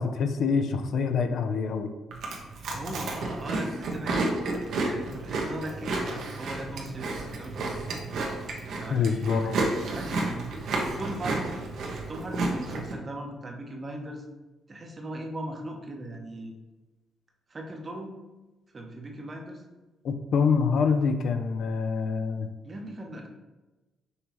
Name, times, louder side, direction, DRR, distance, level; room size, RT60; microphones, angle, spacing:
voice 1, 0.0-1.9 8.9-9.6 20.0-22.5, left 5 dB, 65° left, 7 dB, 0.4 m, -26 dB
Chewing mastication, 2.1-12.9, right 2 dB, 70° right, 0.8 m, -31 dB
voice 2, 2.5-4.3 4.8-7.8 8.7-9.5 9.9-10.4 10.7-11.6 12.1-14.3 14.7-16.5 17.5-18.2 18.7-19.6 22.6-23.3, right 1 dB, 30° right, 2 dB, 0.7 m, -38 dB
5.5 x 2.9 x 3.0 m, 1.1 s
cardioid pair, 90°, 0 cm